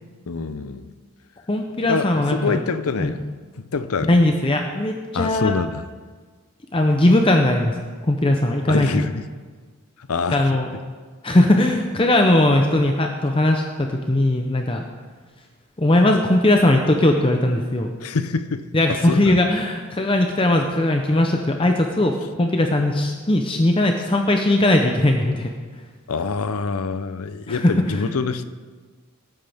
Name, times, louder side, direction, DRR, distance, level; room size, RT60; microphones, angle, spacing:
voice 1, 0.3-0.9 1.8-3.3 3.6-4.2 5.1-5.8 8.7-9.2 10.0-10.4 18.0-19.4 26.1-28.4, left 4 dB, 80° left, 12 dB, 0.6 m, -26 dB
voice 2, 1.5-2.6 3.0-3.1 4.0-5.5 6.7-7.7 8.1-8.9 10.3-10.7 11.2-14.8 15.8-17.9 18.7-22.1 22.4-25.5 27.5-28.0, left 1 dB, 25° left, 3 dB, 0.6 m, -19 dB
18.0 x 9.2 x 3.5 m, 1.5 s
head